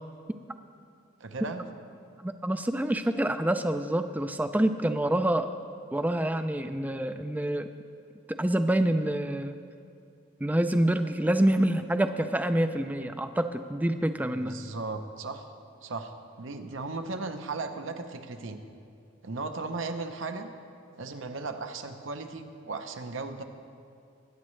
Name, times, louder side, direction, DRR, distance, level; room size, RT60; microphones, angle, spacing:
voice 1, 1.2-1.6 14.3-18.6 19.2-20.5 21.0-23.4, right 3 dB, 65° right, 7 dB, 0.8 m, -36 dB
voice 2, 2.2-5.5 5.9-7.7 8.4-9.6 10.4-14.6, right 1 dB, 10° right, 9 dB, 0.3 m, -27 dB
21.0 x 9.7 x 3.2 m, 2.5 s
head